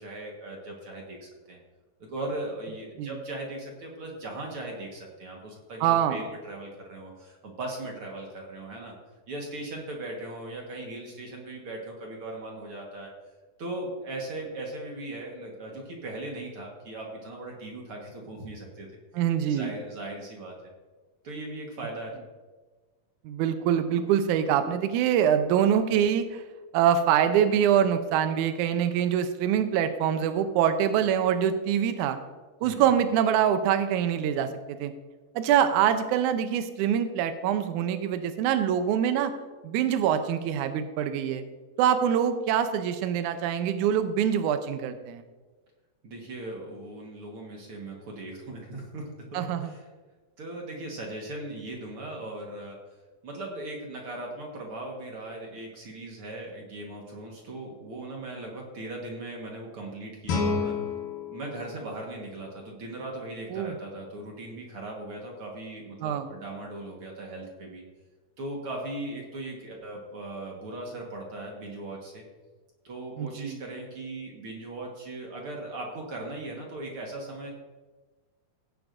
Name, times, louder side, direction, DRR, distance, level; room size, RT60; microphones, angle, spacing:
voice 1, 0.0-1.6 2.1-8.9 9.3-13.1 13.6-19.0 19.5-20.5 21.2-22.1 32.6-32.9 46.0-49.0 49.3-49.8 50.4-52.8 53.2-60.7 61.3-67.8 68.4-72.2 72.8-77.5, right 2 dB, 55° right, -1 dB, 1.6 m, -38 dB
voice 2, 5.8-6.3 19.1-19.7 23.2-26.4 26.7-32.2 32.6-34.9 35.3-39.3 39.6-41.4 41.8-45.2 49.3-49.7 63.5-63.8 66.0-66.3 73.2-73.6, right 9 dB, 90° right, 9 dB, 1.8 m, -24 dB
Guitar, 60.2-63.0, left 4 dB, 70° left, 2.8 m, -32 dB
17.0 x 9.6 x 2.6 m, 1.3 s
omnidirectional pair, 4.3 m